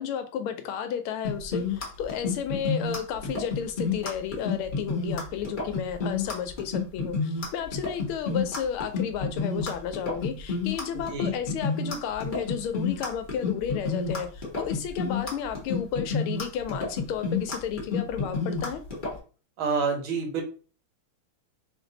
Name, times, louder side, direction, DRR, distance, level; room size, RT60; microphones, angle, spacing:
voice 1, 0.0-18.8, left 8 dB, 80° left, 1.5 m, -32 dB
sound 1, 1.2-19.1, left 4 dB, 35° left, 0.9 m, -29 dB
voice 2, 19.6-20.4, right 5 dB, 75° right, 1.7 m, -27 dB
3.6 x 2.6 x 3.9 m
omnidirectional pair, 2.3 m